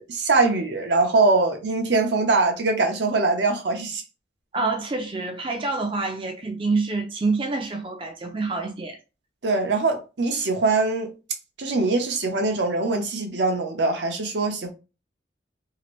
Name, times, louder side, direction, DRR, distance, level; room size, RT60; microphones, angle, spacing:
voice 1, 0.0-4.0 9.4-11.1 11.6-14.7, right 3 dB, 80° right, 0.7 m, -22 dB
voice 2, 4.5-9.0, right 3 dB, 30° right, 0.4 m, -27 dB
2.8 x 2.5 x 3.0 m
head